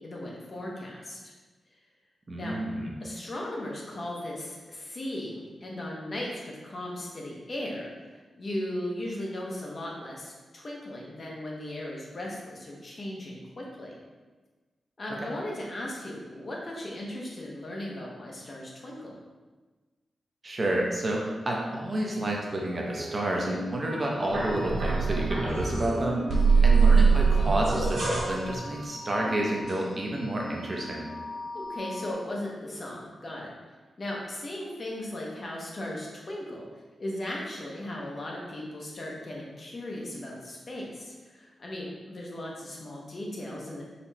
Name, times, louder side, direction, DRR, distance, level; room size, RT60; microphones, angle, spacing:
voice 1, 0.0-1.2 2.4-2.5 3.0-14.0 15.0-19.2 26.3-26.8 31.5-33.5 34.0-36.7 37.0-43.8, left 1 dB, 35° left, -2 dB, 0.9 m, -37 dB
voice 2, 2.3-2.9 20.4-26.3 26.6-31.0, right 1 dB, 30° right, -2 dB, 0.7 m, -29 dB
sound 1, 22.7-28.2, right 1 dB, 15° right, 1.3 m, -41 dB
sound 2, 24.3-25.9 26.3-30.3 30.6-32.1, right 4 dB, 85° right, 1.3 m, -25 dB
4.2 x 2.9 x 4.1 m, 1.3 s
wide cardioid pair, 150°, 0 cm